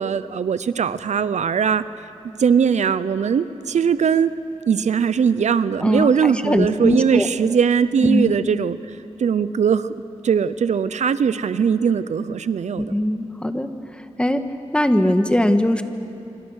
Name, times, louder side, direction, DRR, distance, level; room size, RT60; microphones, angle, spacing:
voice 1, 0.0-1.8 2.4-4.3 4.7-9.9 10.2-12.9, right 7 dB, 85° right, 14 dB, 0.7 m, -20 dB
voice 2, 5.8-7.3 8.0-8.3 12.8-13.7 14.2-14.4 14.7-15.8, left 1 dB, 10° left, 7 dB, 1.5 m, -20 dB
26.5 x 25.5 x 6.5 m, 2.9 s
cardioid pair, 65°, 12 cm